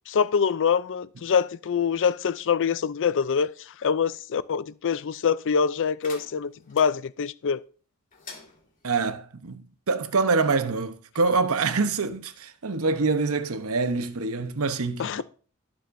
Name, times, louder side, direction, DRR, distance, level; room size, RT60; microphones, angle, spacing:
voice 1, 0.1-3.5 3.8-7.6 15.0-15.2, left 6 dB, 55° left, 0.4 m, -25 dB
sound 1, 6.0-6.9 8.1-9.0, left 4 dB, 40° left, 2.8 m, -46 dB
voice 2, 8.8-15.2, right 4 dB, 70° right, 0.9 m, -25 dB
18.0 x 7.3 x 2.6 m
head